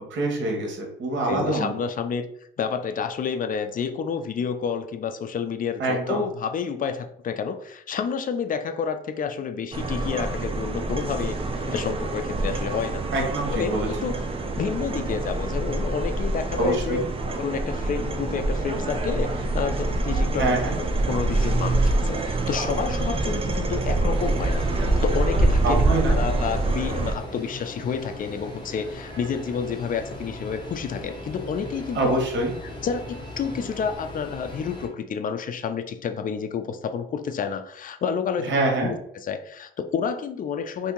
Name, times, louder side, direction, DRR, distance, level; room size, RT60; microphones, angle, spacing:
voice 1, 0.1-1.7 5.8-6.2 13.1-14.1 16.6-17.0 20.4-20.8 25.6-26.2 31.9-32.5 38.4-38.9, right 2 dB, 70° right, 1 dB, 1.2 m, -25 dB
voice 2, 1.3-2.3 2.6-13.1 13.5-20.6 21.1-25.8 26.1-32.2 32.8-38.5 38.8-40.9, left 6 dB, 45° left, 8 dB, 0.4 m, -29 dB
sound 1, 9.7-27.1, right 2 dB, 30° right, 0.5 m, -25 dB
sound 2, 24.1-34.9, left 1 dB, 20° left, 0.9 m, -38 dB
2.7 x 2.7 x 3.7 m, 0.71 s
cardioid pair, 90°, 20 cm